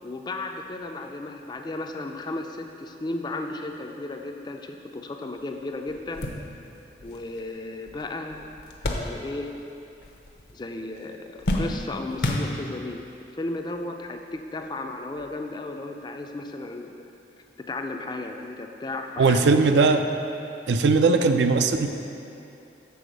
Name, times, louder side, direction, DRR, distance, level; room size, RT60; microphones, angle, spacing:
voice 1, 0.0-6.3 7.0-8.5 8.9-9.5 10.5-13.1 13.3-16.9 17.7-19.8, left 2 dB, 25° left, 4 dB, 0.4 m, -34 dB
sound 1, 5.4-5.5 5.9-9.7 9.9-10.6 10.9-13.0 13.8-13.9 15.2-15.3, left 1 dB, 60° left, 0.7 m, -31 dB
voice 2, 19.2-20.0 20.7-21.9, right 4 dB, 75° right, 7 dB, 0.4 m, -19 dB
6.9 x 4.1 x 6.2 m, 2.7 s
head